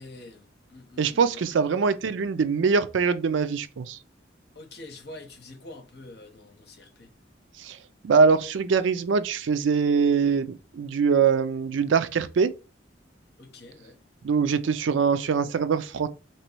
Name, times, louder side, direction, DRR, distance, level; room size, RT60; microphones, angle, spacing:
voice 1, 0.0-1.6 4.5-7.1 13.4-14.0, left 2 dB, 55° left, 1.0 m, -46 dB
voice 2, 1.0-4.0 7.6-7.8 8.0-12.5 14.2-16.1, right 5 dB, 80° right, 0.4 m, -23 dB
3.0 x 3.0 x 4.4 m
head